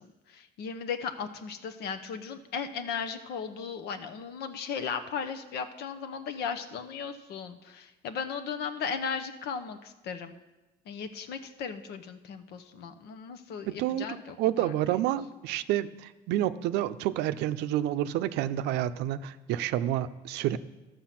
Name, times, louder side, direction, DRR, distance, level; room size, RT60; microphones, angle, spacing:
voice 1, 0.0-10.3 10.9-14.7, left 6 dB, 75° left, 8 dB, 0.9 m, -36 dB
voice 2, 13.7-20.6, right 12 dB, 90° right, 12 dB, 0.5 m, -29 dB
12.5 x 6.7 x 5.9 m, 1.1 s
cardioid pair, 110°, 17 cm